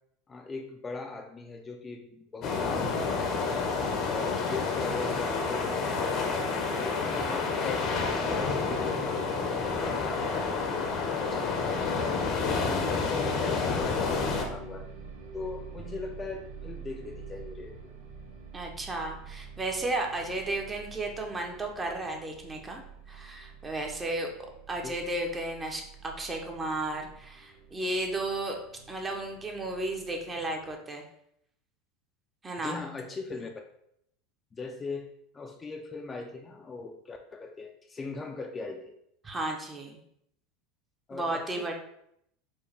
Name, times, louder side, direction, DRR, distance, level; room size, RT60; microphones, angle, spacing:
voice 1, 0.3-3.7 4.1-6.4 6.8-11.8 12.4-14.9 15.3-17.7 24.8-24.9 32.6-33.5 34.5-35.1 35.3-38.9 41.1-41.7, left 3 dB, 25° left, 3 dB, 0.4 m, -40 dB
sound 1, 2.4-14.4, left 4 dB, 50° left, 0.7 m, -29 dB
sound 2, 13.8-30.7, right 6 dB, 80° right, 1.0 m, -47 dB
voice 2, 18.5-24.3 24.7-28.6 28.9-31.0 32.4-32.8 39.2-40.0 41.1-41.7, right 2 dB, 20° right, 2 dB, 0.8 m, -34 dB
4.5 x 2.3 x 3.4 m, 0.74 s
hypercardioid pair, 90°, 0 cm